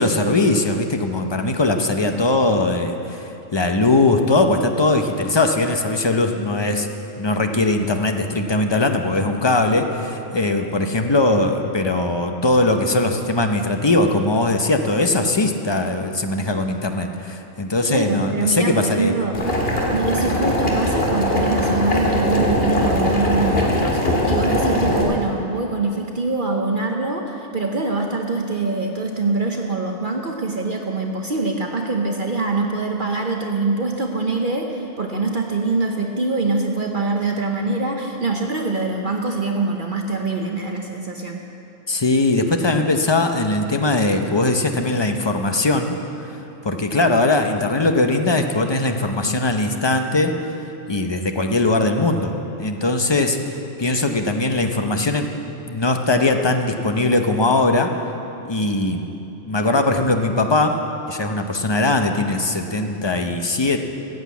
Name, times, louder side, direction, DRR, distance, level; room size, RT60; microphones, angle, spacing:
voice 1, 0.0-6.9 7.2-19.1 41.9-46.0 46.6-50.3 50.9-52.3 52.6-55.3 55.7-57.9 58.4-59.0 59.4-60.8 61.1-63.8, left 2 dB, 25° left, 5 dB, 0.6 m, -20 dB
voice 2, 17.9-19.4 19.9-24.0 24.3-41.4, right 3 dB, 45° right, 2 dB, 1.0 m, -24 dB
Boiling, 19.3-25.0, left 1 dB, 50° left, 2.1 m, -20 dB
14.0 x 8.2 x 8.2 m, 3.0 s
omnidirectional pair, 1.3 m